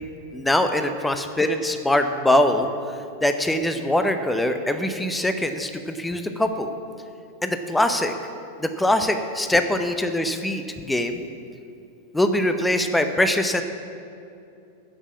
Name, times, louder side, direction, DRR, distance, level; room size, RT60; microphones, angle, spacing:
voice 1, 0.3-2.7 3.2-6.7 7.4-8.1 8.6-11.2 12.1-13.6, left 1 dB, 5° left, 7 dB, 0.7 m, -22 dB
9.9 x 7.4 x 8.3 m, 2.6 s
figure-of-eight pair, 90°, 0 cm